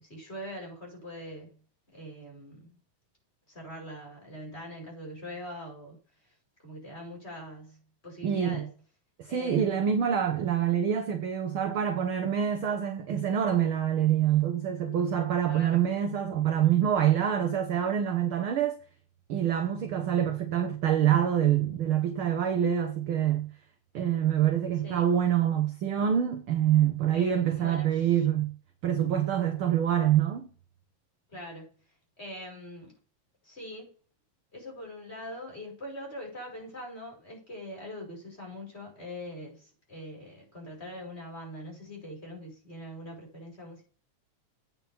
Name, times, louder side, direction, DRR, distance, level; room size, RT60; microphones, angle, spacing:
voice 1, 0.0-1.6 1.9-2.7 3.5-6.0 6.2-6.3 6.6-8.7 9.3-9.9 15.5-15.8 24.8-25.1 27.1-28.2 31.3-31.7 32.2-33.0 33.4-33.9 34.5-43.8, equal, 20° left, 5.8 m, -42 dB
voice 2, 8.2-8.6 9.2-18.8 19.3-23.5 23.9-28.5 28.8-30.5, right 9 dB, 65° right, 1.4 m, -26 dB
8.8 x 6.1 x 6.9 m
omnidirectional pair, 3.6 m